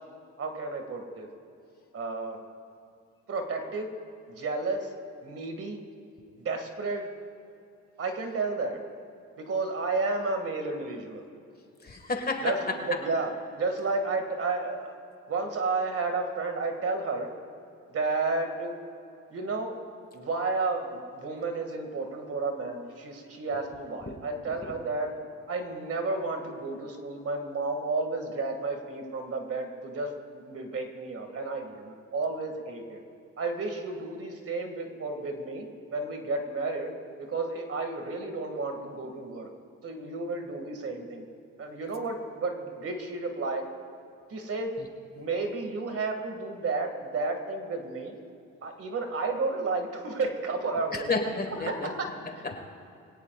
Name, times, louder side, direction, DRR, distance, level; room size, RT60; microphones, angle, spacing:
voice 1, 0.4-1.3 1.9-2.4 3.3-3.9 4.3-4.9 5.2-5.8 6.4-7.1 8.0-8.8 9.4-11.3 12.4-15.0 15.3-17.3 17.9-18.7 19.3-19.8 20.1-25.1 25.5-33.0 33.4-39.5 39.8-41.2 41.6-43.7 44.3-44.8 45.1-48.1 48.6-51.1 51.7-52.1 52.3-52.6, right 3 dB, 50° right, 4 dB, 2.3 m, -32 dB
voice 2, 11.8-12.5 24.1-24.2 50.9-51.9 52.4-52.6, left 3 dB, 30° left, 4 dB, 2.0 m, -30 dB
22.5 x 17.5 x 2.5 m, 2.5 s
cardioid pair, 90°, 30 cm